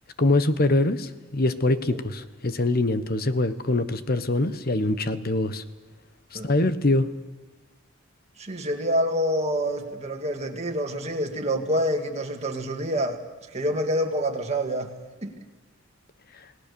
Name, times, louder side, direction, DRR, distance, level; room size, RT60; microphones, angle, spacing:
voice 1, 0.2-5.6 6.3-7.1 16.3-16.5, left 2 dB, 50° left, 1.1 m, -24 dB
voice 2, 8.4-13.2 13.5-14.9 15.2-15.4, equal, 35° right, 2.2 m, -27 dB
29.0 x 18.0 x 6.9 m
head